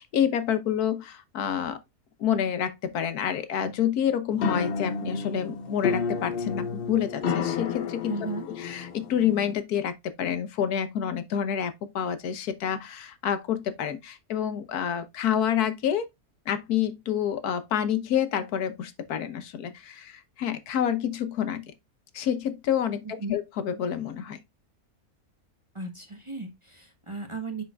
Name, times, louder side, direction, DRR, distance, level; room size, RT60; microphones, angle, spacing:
voice 1, 0.0-1.8 2.2-8.1 8.6-16.0 16.5-21.7 22.1-24.4, left 9 dB, 85° left, 1.4 m, -28 dB
sound 1, 4.3-9.5, left 5 dB, 60° left, 0.6 m, -31 dB
voice 2, 8.1-8.5 23.0-23.4 25.7-27.6, right 3 dB, 25° right, 0.9 m, -35 dB
10.0 x 4.3 x 2.3 m
omnidirectional pair, 1.6 m